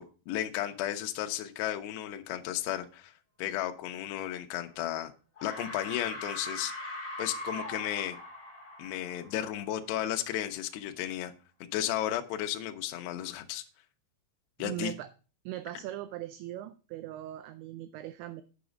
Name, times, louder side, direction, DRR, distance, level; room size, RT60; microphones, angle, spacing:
voice 1, 0.0-3.1 3.4-5.1 5.4-8.2 8.8-11.3 11.6-13.6 14.6-14.9, left 12 dB, 85° left, 6 dB, 2.4 m, -34 dB
sound 1, 4.7-5.0 5.3-9.9, left 1 dB, 20° left, 2.9 m, -41 dB
voice 2, 14.6-15.1 15.5-18.4, right 14 dB, 90° right, 11 dB, 2.6 m, -40 dB
8.7 x 6.1 x 5.0 m, 0.36 s
omnidirectional pair, 5.9 m